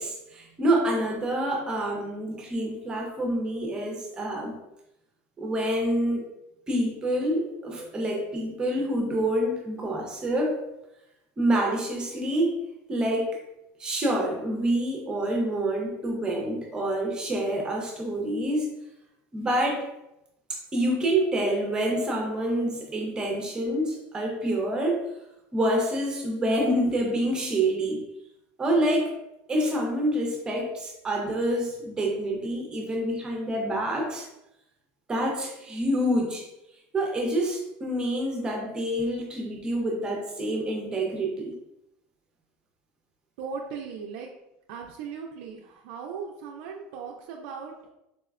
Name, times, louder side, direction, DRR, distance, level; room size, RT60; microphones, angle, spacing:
voice 1, 0.0-4.6 5.4-6.2 6.7-10.6 11.4-12.6 12.9-13.4 13.8-18.7 19.3-19.9 20.5-25.0 25.5-28.0 28.6-29.1 29.5-34.3 35.1-36.5 36.9-41.6, right 1 dB, 15° right, 0 dB, 0.6 m, -27 dB
voice 2, 43.4-44.3 44.7-47.7, right 6 dB, 75° right, 0 dB, 0.3 m, -38 dB
4.0 x 2.1 x 2.3 m, 0.88 s
cardioid pair, 155°, 5 cm